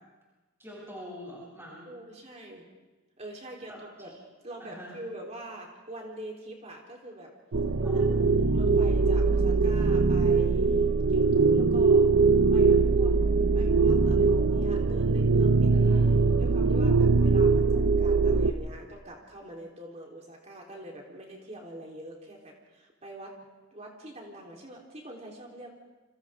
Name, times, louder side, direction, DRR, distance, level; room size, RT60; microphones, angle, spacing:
voice 1, 0.6-1.9 3.7-4.1 4.6-5.0 7.8-8.3 15.7-16.1, equal, 15° right, -5 dB, 7.8 m, -44 dB
voice 2, 1.8-2.6 3.2-4.1 4.4-7.3 7.9-12.1 12.5-13.1 13.5-16.1 16.4-23.4 23.7-25.7, right 1 dB, 35° right, -1 dB, 3.8 m, -44 dB
sound 1, 7.5-18.5, right 4 dB, 75° right, 0.9 m, -22 dB
29.5 x 26.0 x 3.7 m, 1.2 s
head